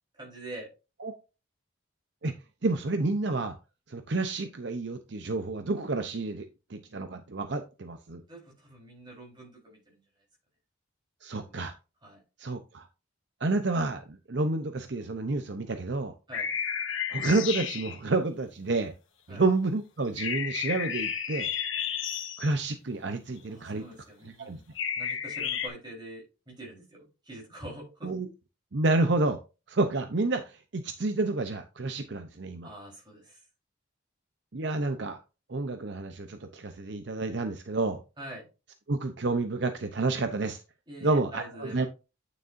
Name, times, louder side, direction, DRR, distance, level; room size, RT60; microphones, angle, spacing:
voice 1, 0.2-0.7 8.3-10.0 11.4-11.7 12.0-12.2 16.3-16.5 19.3-19.4 23.5-24.6 25.0-28.1 32.6-33.4 38.2-38.5 40.9-41.9, right 1 dB, 25° right, -2 dB, 4.0 m, -45 dB
voice 2, 2.6-3.6 3.9-8.2 11.2-11.7 12.4-12.9 13.4-16.1 17.1-18.9 19.3-21.5 22.4-23.8 24.2-24.6 28.0-28.3 28.7-29.4 29.7-32.7 34.5-35.2 35.5-38.0 38.9-40.6 41.0-41.9, right 3 dB, 60° right, 7 dB, 0.7 m, -29 dB
sound 1, 16.3-18.0 20.2-22.5 24.7-25.7, left 8 dB, 80° left, 1.4 m, -32 dB
9.3 x 6.5 x 2.6 m, 0.30 s
head